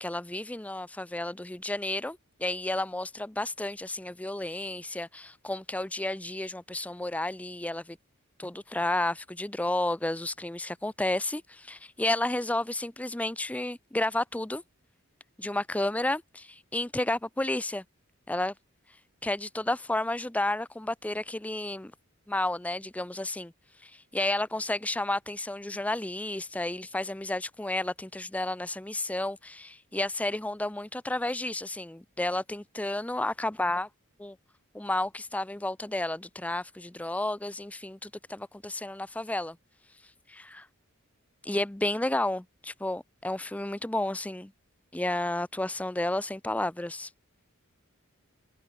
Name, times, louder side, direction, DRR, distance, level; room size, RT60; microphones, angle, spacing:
voice 1, 0.0-8.0 8.4-14.6 15.4-17.8 18.3-18.5 19.2-21.9 22.3-23.5 23.8-33.9 34.2-34.4 34.7-39.6 40.3-40.7 41.4-44.5 44.9-47.1, left 1 dB, 5° left, 0.4 m, -31 dB
head